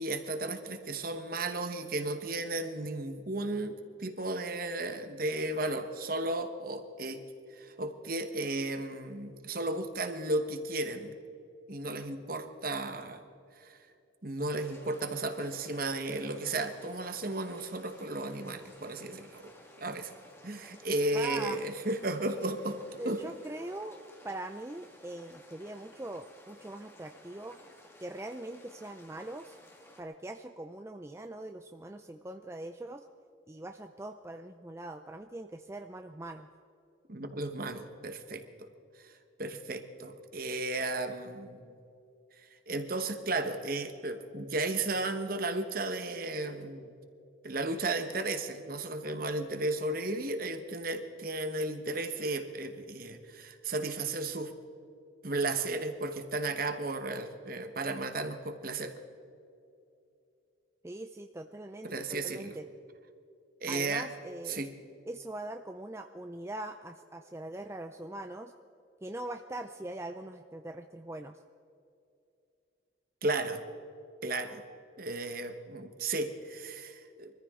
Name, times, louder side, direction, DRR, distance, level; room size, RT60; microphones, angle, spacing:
voice 1, 0.0-7.2 7.5-11.1 11.7-13.2 13.6-13.8 14.2-19.5 19.8-20.1 20.4-22.8 23.0-23.2 37.1-38.7 39.0-39.1 39.4-41.7 42.7-47.0 47.4-54.5 55.2-58.9 61.8-62.6 63.6-64.1 64.5-64.7 73.2-73.6 74.2-74.6 75.0-77.3, right 2 dB, 45° right, 8 dB, 1.2 m, -34 dB
sound 1, 14.5-30.0, left 1 dB, 10° left, 1.6 m, -56 dB
voice 2, 21.1-21.6 23.0-24.0 24.2-27.6 28.0-29.6 30.0-33.1 33.5-36.5 60.8-62.7 63.7-64.6 65.1-68.5 69.0-71.4, right 1 dB, 15° right, 6 dB, 0.4 m, -42 dB
24.5 x 14.0 x 3.7 m, 2.6 s
head